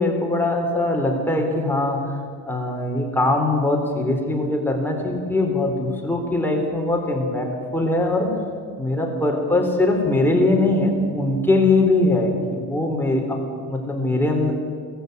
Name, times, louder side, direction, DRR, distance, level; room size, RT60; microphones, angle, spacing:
voice 1, 0.0-2.2 2.5-8.3 8.8-13.4 13.7-14.5, left 2 dB, 5° left, 1 dB, 4.0 m, -21 dB
19.0 x 15.0 x 9.7 m, 2.1 s
cardioid pair, 110°, 36 cm